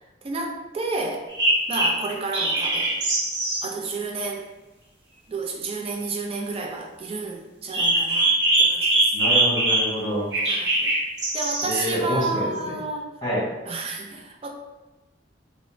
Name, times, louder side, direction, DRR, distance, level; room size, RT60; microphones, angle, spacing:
voice 1, 0.2-1.3 1.7-3.0 3.6-4.4 5.3-9.1 10.4-10.9 11.3-13.1 13.7-14.5, right 3 dB, 35° right, 2 dB, 0.4 m, -31 dB
sound 1, 1.3-3.6 7.7-10.0 10.3-11.9, right 1 dB, 80° right, 0.8 m, -22 dB
voice 2, 9.1-10.2 11.6-12.7 13.2-13.5, equal, 25° left, -8 dB, 1.1 m, -27 dB
2.5 x 2.0 x 3.0 m, 1.1 s
head